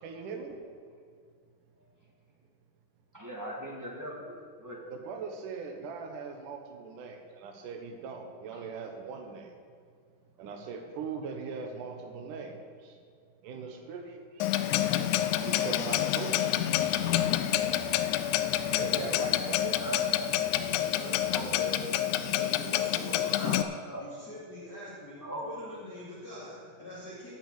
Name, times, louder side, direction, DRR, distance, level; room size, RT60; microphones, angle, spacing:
voice 1, 0.0-0.6 4.9-9.6 10.4-13.0 13.4-14.5 15.4-16.6 18.6-19.8, right 5 dB, 70° right, 4 dB, 2.6 m, -40 dB
voice 2, 3.1-4.9 8.5-8.6 18.5-19.1 19.7-20.1 21.3-21.8 22.1-22.3 23.3-24.0 25.2-25.4, equal, 30° right, -3 dB, 0.3 m, -40 dB
Clock, 14.4-23.6, left 12 dB, 85° left, 1.8 m, -28 dB
voice 3, 18.5-19.1 20.9-21.7 22.3-23.6 24.0-27.3, left 1 dB, 30° left, -8 dB, 2.6 m, -44 dB
12.5 x 6.2 x 8.9 m, 2.2 s
omnidirectional pair, 3.9 m